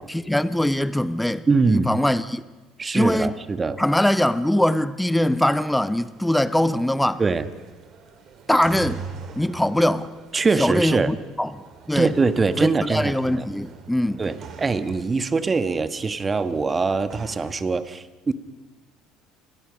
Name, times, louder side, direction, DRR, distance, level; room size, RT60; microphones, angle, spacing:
voice 1, 0.1-2.4 2.9-3.3 3.8-7.2 8.5-9.1 9.4-10.1 10.6-12.1 12.6-14.2, left 1 dB, 5° left, 1.1 m, -22 dB
voice 2, 1.5-1.9 2.8-3.8 7.2-7.5 10.3-11.1 11.9-13.4 14.2-18.3, right 4 dB, 25° right, 1.5 m, -23 dB
sound 1, 6.0-17.5, right 6 dB, 50° right, 3.2 m, -43 dB
29.5 x 21.5 x 5.3 m
hypercardioid pair, 70°, 0 cm